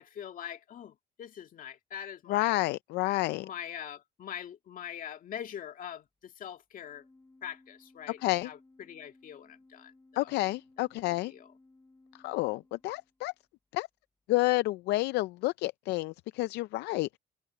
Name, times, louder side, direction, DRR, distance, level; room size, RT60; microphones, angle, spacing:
voice 1, 0.0-2.6 3.4-7.0 7.4-10.3 10.8-11.5, left 9 dB, 55° left, 2.3 m, -43 dB
voice 2, 2.3-3.5 8.2-8.5 10.2-11.3 12.2-13.3 13.7-13.9 14.3-17.2, left 19 dB, 80° left, 0.4 m, -29 dB
Organ, 6.8-13.4, left 2 dB, 15° left, 6.6 m, -61 dB
cardioid pair, 110°, 17 cm